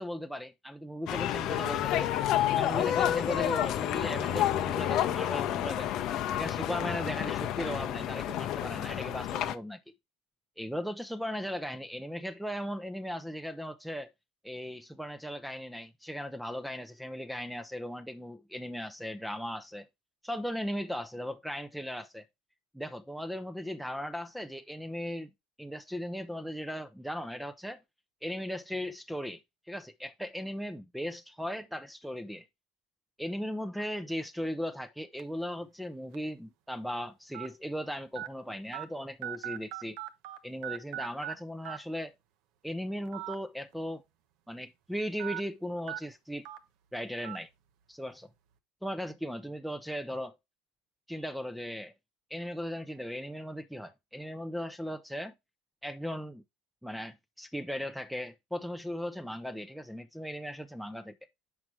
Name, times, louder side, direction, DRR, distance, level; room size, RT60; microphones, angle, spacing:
voice 1, 0.0-2.1 2.5-6.0 6.3-9.8 10.6-14.1 14.4-19.9 20.2-22.3 22.7-25.3 25.6-27.8 28.2-29.4 29.7-32.5 33.2-40.0 40.4-42.1 42.6-44.0 44.5-46.5 46.9-47.5 47.9-48.3 48.8-50.3 51.1-51.9 52.3-55.3 55.8-56.4 56.8-61.2, equal, ahead, 0.6 m, -37 dB
sound 1, 1.1-9.5, left 12 dB, 55° left, 0.6 m, -30 dB
sound 2, 35.2-35.4 36.1-36.2 37.3-37.5 38.2-38.3 38.7-38.8 39.2-40.4 40.6-41.3 41.7-41.8 43.1-43.3 43.7-43.8 45.2-45.4 45.9-46.0 46.5-46.6 47.2-47.4, right 13 dB, 65° right, 0.7 m, -38 dB
5.9 x 4.9 x 4.5 m
hypercardioid pair, 90°, 0 cm